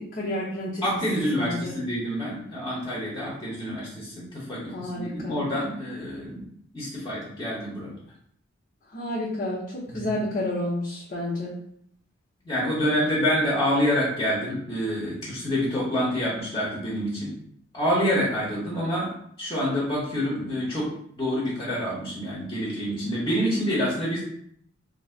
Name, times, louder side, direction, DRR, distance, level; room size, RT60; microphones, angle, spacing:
voice 1, 0.0-1.8 4.7-5.4 8.9-11.6, left 1 dB, 45° left, -7 dB, 0.8 m, -31 dB
voice 2, 0.8-6.4 6.7-8.0 9.9-10.1 12.4-17.3 17.7-19.1 19.4-20.9 21.2-24.2, equal, 20° left, -6 dB, 1.0 m, -27 dB
2.9 x 2.7 x 4.4 m, 0.69 s
head